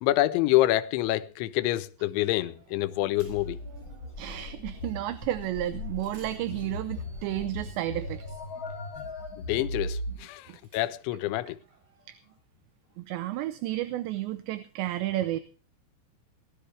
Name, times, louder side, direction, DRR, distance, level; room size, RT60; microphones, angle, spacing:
voice 1, 0.0-3.6 9.4-11.6, left 16 dB, 80° left, 3.0 m, -27 dB
sound 1, 2.2-12.4, right 5 dB, 40° right, 5.5 m, -59 dB
sound 2, 2.7-2.9 3.2-3.7 5.5-5.6 6.0-11.3, right 2 dB, 25° right, 7.6 m, -62 dB
sound 3, 3.2-10.1, left 1 dB, 35° left, 2.3 m, -38 dB
voice 2, 4.2-8.4 12.1-12.2 13.0-15.4, right 14 dB, 75° right, 2.8 m, -32 dB
18.5 x 13.0 x 3.3 m
omnidirectional pair, 5.6 m